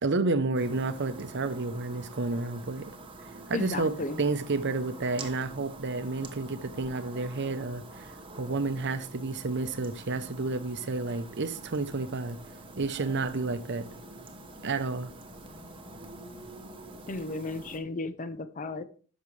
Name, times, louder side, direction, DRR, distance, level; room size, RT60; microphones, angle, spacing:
voice 1, 0.0-2.9 3.5-8.1 8.4-12.4 12.8-13.9 14.6-15.1, right 3 dB, 55° right, 0.7 m, -30 dB
sound 1, 0.5-17.8, right 2 dB, 25° right, 1.1 m, -46 dB
voice 2, 3.5-4.2 17.1-18.8, left 3 dB, 35° left, 0.6 m, -34 dB
10.5 x 6.5 x 3.3 m
head